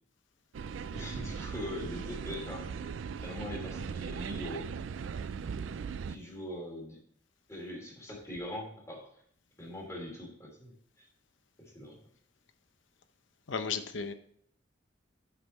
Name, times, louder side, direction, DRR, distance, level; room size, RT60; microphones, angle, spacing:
sound 1, 0.5-6.2, right 6 dB, 90° right, 0.4 m, -38 dB
voice 1, 0.9-2.7 3.2-4.8 6.1-7.0 7.5-9.1 9.6-11.0 11.6-12.0, left 1 dB, 15° left, -2 dB, 2.8 m, -42 dB
voice 2, 13.5-14.1, left 5 dB, 85° left, 9 dB, 0.8 m, -34 dB
7.8 x 5.4 x 4.1 m, 0.65 s
head